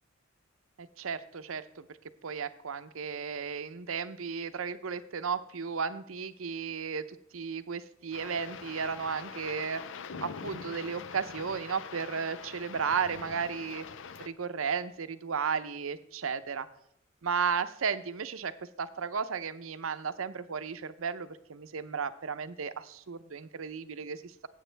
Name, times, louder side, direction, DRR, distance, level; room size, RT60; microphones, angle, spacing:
voice 1, 0.8-1.9 2.2-9.8 10.2-13.9 14.2-16.7 17.2-18.5 18.8-24.5, right 6 dB, 85° right, 12 dB, 0.7 m, -34 dB
sound 1, 8.1-14.3, left 6 dB, 65° left, 0.6 m, -44 dB
15.5 x 8.2 x 3.4 m, 0.72 s
head